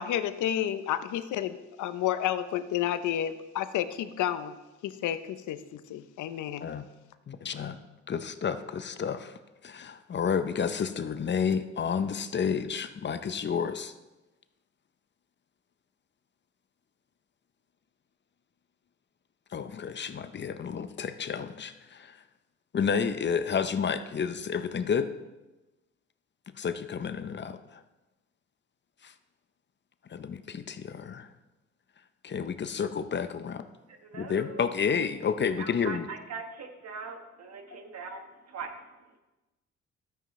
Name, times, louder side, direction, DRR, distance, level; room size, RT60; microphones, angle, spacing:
voice 1, 0.0-4.5 4.8-6.7, left 11 dB, 80° left, 12 dB, 0.7 m, -31 dB
voice 2, 7.3-13.9 19.5-22.2 22.7-25.1 26.5-27.8 29.0-29.1 30.1-31.3 32.2-33.6 34.2-36.1, left 6 dB, 35° left, 10 dB, 0.6 m, -31 dB
voice 3, 33.9-34.6 35.6-39.2, right 5 dB, 60° right, 5 dB, 1.4 m, -41 dB
12.5 x 9.1 x 3.2 m, 1.1 s
cardioid pair, 90°, 30 cm